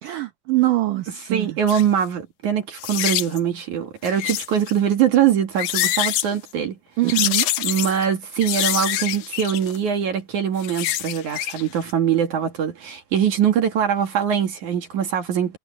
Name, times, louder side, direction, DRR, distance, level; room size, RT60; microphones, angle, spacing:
voice 1, 0.0-1.6 7.0-7.5, right 17 dB, 80° right, 1.8 m, -23 dB
voice 2, 1.3-6.7 7.6-15.6, right 9 dB, 55° right, 2.7 m, -22 dB
sound 1, 1.7-1.8 2.8-3.4 4.0-4.7 5.4-6.3 7.1-8.0 8.4-9.8 10.5-11.6 11.9-12.0, left 13 dB, 85° left, 1.9 m, -25 dB
omnidirectional pair, 5.2 m